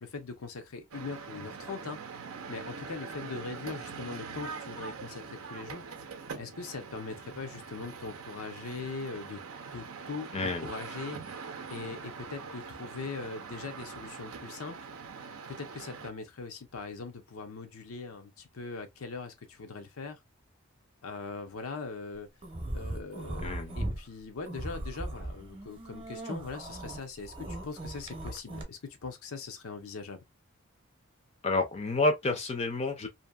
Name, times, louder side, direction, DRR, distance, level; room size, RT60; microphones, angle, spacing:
voice 1, 0.0-2.0 2.5-5.8 6.3-9.4 9.7-14.9 15.5-20.2 21.0-22.3 22.7-30.2, left 4 dB, 85° left, 0.7 m, -41 dB
sound 1, 0.9-16.1, right 5 dB, 80° right, 0.5 m, -43 dB
voice 2, 10.3-10.7 23.4-23.8 31.4-33.1, left 2 dB, 30° left, 0.5 m, -29 dB
sound 2, 22.4-24.0 24.4-28.6, right 1 dB, 25° right, 0.7 m, -38 dB
2.7 x 2.6 x 2.2 m
head